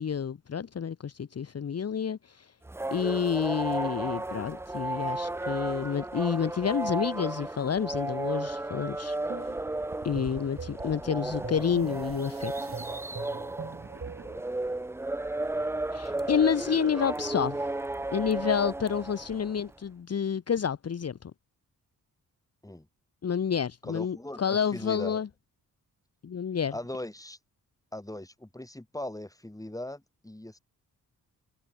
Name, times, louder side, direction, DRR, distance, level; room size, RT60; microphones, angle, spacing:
voice 1, 0.0-2.5 2.9-9.5 10.0-12.5 15.9-17.7 18.1-21.3 23.2-25.3 26.2-26.7, left 7 dB, 45° left, 1.1 m, -29 dB
sound 1, 2.6-19.7, right 2 dB, 5° right, 0.5 m, -34 dB
sound 2, 9.3-14.4, right 5 dB, 40° right, 2.1 m, -42 dB
voice 2, 23.8-25.2 26.7-27.4 27.9-30.6, left 1 dB, 10° left, 5.3 m, -39 dB
cardioid pair, 70°, 35 cm